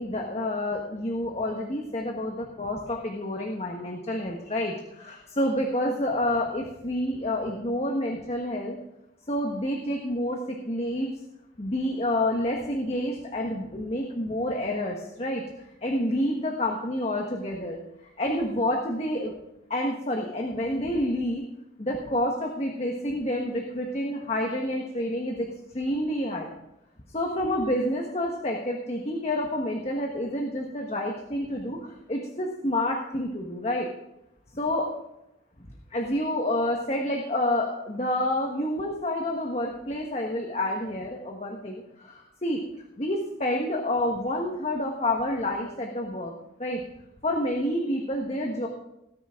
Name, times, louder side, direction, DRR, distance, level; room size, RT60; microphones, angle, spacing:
voice 1, 0.0-8.8 9.3-11.1 11.6-17.8 18.2-19.3 19.7-21.4 21.8-25.5 25.7-26.5 27.1-33.9 34.5-34.9 35.9-42.6 43.0-46.3 46.6-46.8 47.2-48.7, left 1 dB, 35° left, 1 dB, 1.4 m, -28 dB
18.0 x 9.7 x 3.7 m, 0.85 s
head